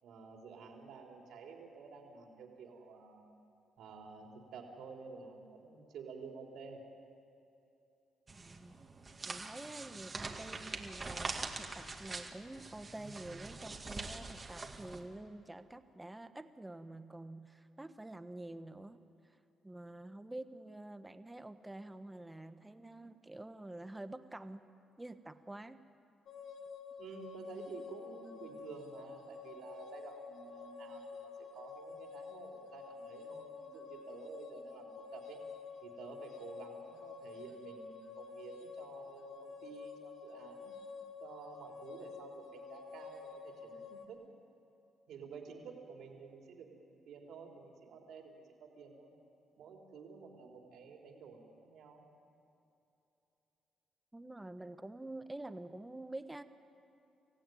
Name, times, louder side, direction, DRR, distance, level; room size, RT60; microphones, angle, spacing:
voice 1, 0.0-3.3 3.8-6.8 27.0-35.4 35.8-40.7 41.2-44.2 45.1-49.1 49.6-52.0, right 5 dB, 75° right, 1 dB, 3.8 m, -51 dB
sound 1, 8.3-15.0, right 3 dB, 30° right, 2.1 m, -44 dB
voice 2, 8.4-8.7 9.2-19.0 19.2-19.4 19.6-24.6 25.0-25.8 54.1-56.4, right 1 dB, 10° right, 9 dB, 1.2 m, -48 dB
sound 2, 26.3-44.1, left 5 dB, 70° left, 2.4 m, -49 dB
25.0 x 15.5 x 9.4 m, 2.9 s
cardioid pair, 90°, 0 cm